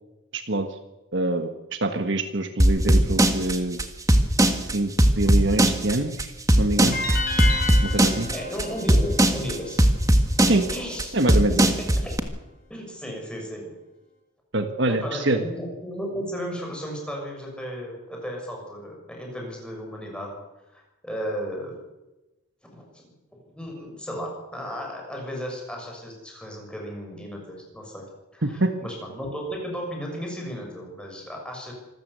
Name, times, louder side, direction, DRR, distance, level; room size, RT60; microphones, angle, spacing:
voice 1, 0.3-0.8 1.1-3.8 4.6-6.3 6.6-7.0 7.9-8.3 10.4-10.6 11.1-11.7 14.5-15.4 28.4-28.7, right 2 dB, 55° right, 7 dB, 1.5 m, -25 dB
sound 1, 2.6-12.2, right 1 dB, 15° right, 1.6 m, -18 dB
sound 2, 6.9-10.1, left 3 dB, 40° left, 6.4 m, -31 dB
voice 2, 8.3-9.9 10.4-11.2 11.5-11.7 12.0-12.1 12.7-13.7 14.9-20.3 20.7-21.8 22.7-23.0 23.5-28.1 28.3-31.7, equal, 5° left, 0 dB, 6.4 m, -34 dB
26.0 x 14.0 x 8.2 m, 1.0 s
head